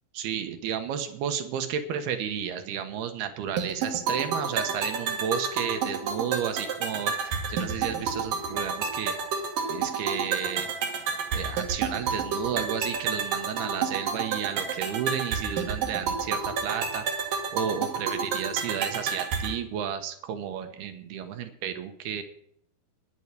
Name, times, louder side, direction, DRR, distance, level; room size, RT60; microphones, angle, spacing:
voice 1, 0.1-9.1 9.7-10.7 11.3-17.0 17.5-22.2, right 8 dB, 75° right, 7 dB, 3.2 m, -32 dB
sound 1, 3.6-19.6, right 5 dB, 60° right, 3.5 m, -30 dB
11.0 x 9.2 x 8.3 m, 0.66 s
omnidirectional pair, 4.6 m